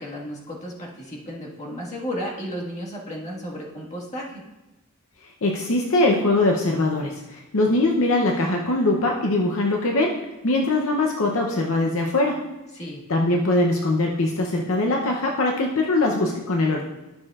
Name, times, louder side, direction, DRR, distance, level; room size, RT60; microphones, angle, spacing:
voice 1, 0.0-4.4 12.7-13.0, equal, 30° left, -4 dB, 1.6 m, -33 dB
voice 2, 5.4-12.4 13.1-16.8, left 2 dB, 65° left, 1 dB, 0.7 m, -22 dB
12.0 x 6.5 x 2.4 m, 1.0 s
head